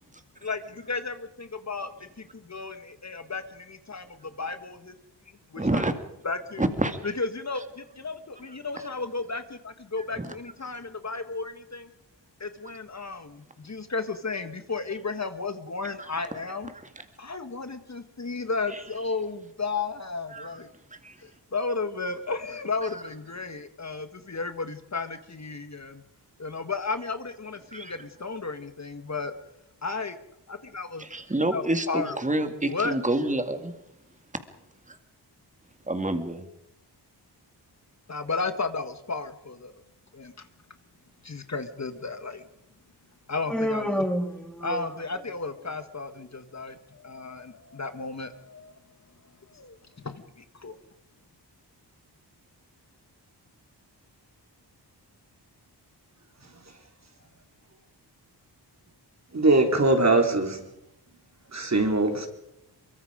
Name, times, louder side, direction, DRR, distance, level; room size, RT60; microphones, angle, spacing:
voice 1, 0.4-4.9 5.5-5.9 6.2-6.6 7.0-11.9 12.4-16.7 17.2-20.7 21.2-26.0 26.4-29.3 29.8-30.2 30.5-31.0 31.5-32.2 32.7-33.0 38.1-39.7 40.1-40.5 41.2-42.4 43.3-44.1 44.6-48.7 49.5-49.7 50.0-50.8, left 4 dB, 40° left, 1.6 m, -33 dB
voice 2, 5.6-5.9 6.6-7.0 10.2-10.3 18.7-18.8 20.3-20.6 21.0-21.2 27.7-27.9 31.0-33.7 34.9-35.0 35.9-36.5, right 1 dB, 15° right, 2.2 m, -28 dB
Human voice, 43.5-45.2, equal, ahead, 2.5 m, -29 dB
voice 3, 59.3-60.6 61.5-62.3, right 2 dB, 40° right, 3.8 m, -21 dB
23.5 x 23.0 x 5.1 m
wide cardioid pair, 75°, 42 cm